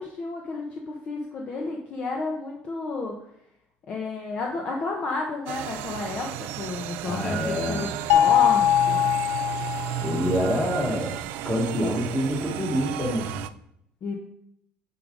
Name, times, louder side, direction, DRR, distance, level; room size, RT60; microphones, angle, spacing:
voice 1, 0.0-3.1 3.9-9.0 14.0-14.1, left 3 dB, 35° left, 0 dB, 0.8 m, -31 dB
sound 1, 5.5-13.5, right 14 dB, 75° right, 0.4 m, -33 dB
voice 2, 7.0-7.9 10.0-11.1 11.4-13.3, equal, 10° left, -1 dB, 1.7 m, -26 dB
sound 2, 8.1-10.3, left 11 dB, 80° left, 0.4 m, -21 dB
8.6 x 4.8 x 3.9 m, 0.73 s
cardioid pair, 170°, 4 cm